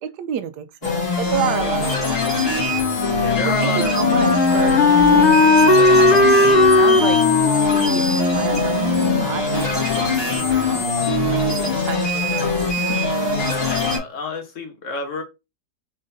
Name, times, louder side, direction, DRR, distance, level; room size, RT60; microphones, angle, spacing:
voice 1, 0.0-2.3 3.4-5.7 5.9-7.2 7.7-12.6 12.9-13.0, right 9 dB, 80° right, 1.2 m, -30 dB
sound 1, 0.8-14.0, left 3 dB, 35° left, 1.9 m, -22 dB
Wind instrument woodwind instrument, 3.0-9.8, left 2 dB, 70° left, 0.4 m, -17 dB
voice 2, 3.2-4.2 13.6-15.2, left 4 dB, 55° left, 1.2 m, -29 dB
4.1 x 3.7 x 2.6 m
omnidirectional pair, 1.8 m